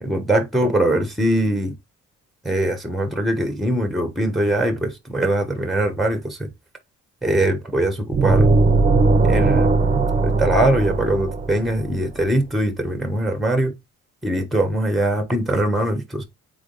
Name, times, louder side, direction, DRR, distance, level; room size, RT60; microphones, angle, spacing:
voice 1, 0.0-1.8 2.4-6.5 7.2-8.5 9.2-9.7 10.2-13.7 14.2-16.2, right 1 dB, ahead, 1.0 m, -22 dB
sound 1, 8.1-11.9, right 3 dB, 25° right, 0.7 m, -18 dB
3.8 x 3.5 x 3.9 m
cardioid pair, 90°, 30 cm